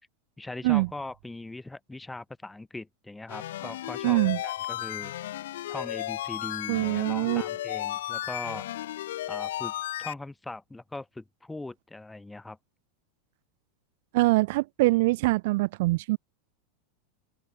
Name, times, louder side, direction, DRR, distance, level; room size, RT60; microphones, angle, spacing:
voice 1, 0.4-5.1 5.7-8.7 9.3-9.7 10.0-12.6, left 2 dB, 5° left, 0.6 m, -40 dB
sound 1, 3.3-10.1, left 13 dB, 85° left, 0.4 m, -34 dB
voice 2, 4.0-4.4 6.7-7.4 14.1-16.2, right 21 dB, 60° right, 0.5 m, -23 dB
open air
supercardioid pair, 155°, 0 cm